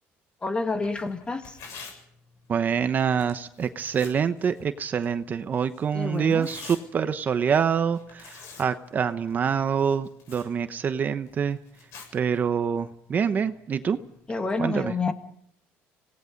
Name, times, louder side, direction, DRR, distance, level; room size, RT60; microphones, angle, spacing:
voice 1, 0.4-1.6 5.9-6.5 14.3-15.1, left 3 dB, 20° left, 2.0 m, -28 dB
Tearing, 0.7-14.6, left 5 dB, 70° left, 7.8 m, -50 dB
voice 2, 2.5-11.6 12.1-14.0 14.6-14.9, right 7 dB, 40° right, 1.0 m, -26 dB
26.5 x 18.5 x 5.3 m
cardioid pair, 115°, 5 cm